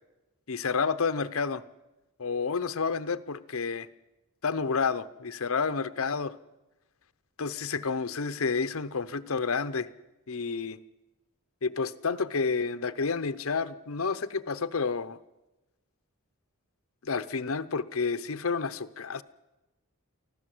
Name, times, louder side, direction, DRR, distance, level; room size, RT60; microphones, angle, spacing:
voice 1, 0.5-1.6 2.2-3.9 4.4-6.3 7.4-9.9 10.3-10.8 11.6-15.2 17.0-19.2, left 5 dB, 70° left, 12 dB, 0.8 m, -30 dB
24.0 x 15.0 x 7.8 m, 1.1 s
head